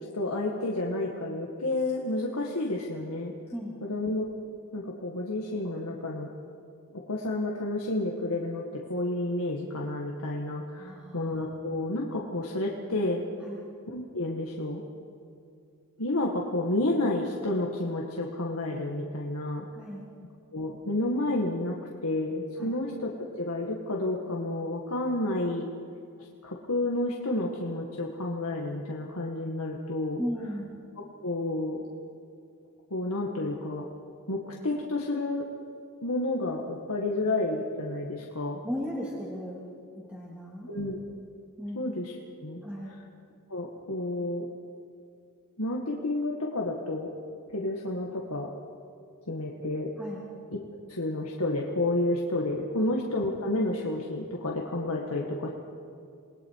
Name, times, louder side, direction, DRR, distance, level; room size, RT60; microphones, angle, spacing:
voice 1, 0.1-3.3 3.8-4.3 4.7-6.3 6.9-13.2 13.9-14.8 16.0-19.7 20.5-21.8 22.0-25.7 26.4-30.2 31.2-31.8 32.9-33.9 34.3-35.4 36.0-38.6 40.7-41.0 41.7-42.1 42.4-42.6 43.5-44.5 45.6-47.1 47.5-48.5 49.3-49.9 50.9-55.5, left 2 dB, 75° left, -1 dB, 2.0 m, -30 dB
voice 2, 10.8-11.3 13.4-13.6 19.7-20.1 22.6-22.7 30.2-30.8 38.6-39.7 39.9-40.7 41.6-41.8 42.6-42.9 50.0-50.2 52.8-52.9, equal, 5° right, -6 dB, 3.1 m, -36 dB
28.5 x 20.5 x 4.8 m, 2.5 s
head